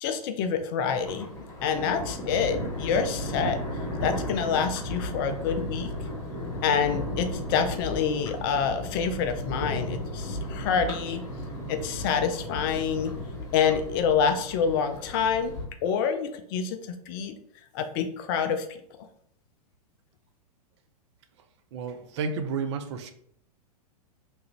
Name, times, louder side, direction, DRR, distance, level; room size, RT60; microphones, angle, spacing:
voice 1, 0.0-1.3 1.6-3.6 4.0-5.9 6.6-11.2 11.7-13.1 13.5-15.5 15.8-17.4 17.7-18.7, left 6 dB, 35° left, 7 dB, 0.4 m, -27 dB
Thunder, 0.9-15.6, left 1 dB, 15° left, 1.0 m, -35 dB
voice 2, 21.7-23.1, right 5 dB, 45° right, 8 dB, 0.4 m, -31 dB
3.0 x 2.4 x 2.9 m, 0.68 s
figure-of-eight pair, 100°, 20 cm